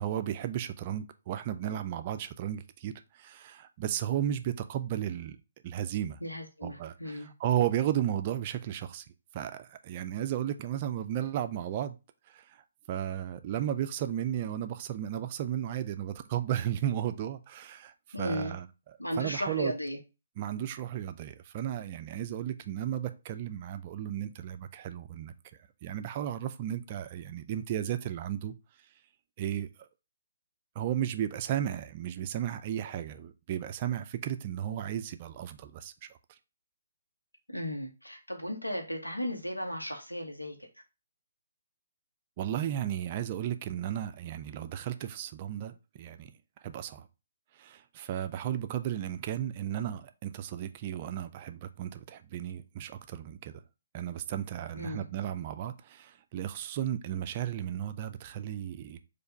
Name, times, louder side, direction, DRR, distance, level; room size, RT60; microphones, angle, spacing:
voice 1, 0.0-5.4 5.6-6.2 6.6-9.0 9.3-12.0 12.3-12.4 12.9-18.7 19.2-19.7 20.4-25.3 25.8-28.5 29.4-29.7 30.8-36.1 42.4-46.3 46.6-47.1 47.6-53.6 53.9-59.0, right 11 dB, 30° right, 0.4 m, -34 dB
voice 2, 6.2-7.3 18.1-18.5 19.0-20.0 37.5-40.6 54.7-55.1, equal, 85° left, 1.2 m, -35 dB
4.4 x 2.6 x 4.3 m
figure-of-eight pair, 135°, 0 cm